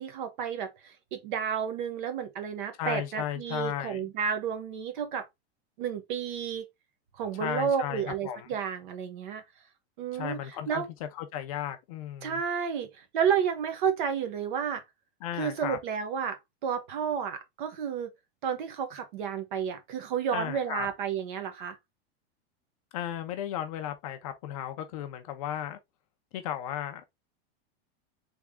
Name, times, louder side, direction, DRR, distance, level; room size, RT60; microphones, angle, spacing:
voice 1, 0.0-5.3 5.8-6.7 7.2-9.4 10.0-10.4 10.7-10.9 12.2-14.8 15.4-18.1 18.4-21.8, right 7 dB, 50° right, 1.0 m, -31 dB
voice 2, 2.8-4.1 7.3-8.5 10.1-10.8 11.1-12.4 15.2-15.8 20.3-20.9 22.9-25.8 26.3-27.1, left 11 dB, 35° left, 0.5 m, -35 dB
3.5 x 3.4 x 3.5 m
supercardioid pair, 175°, 32 cm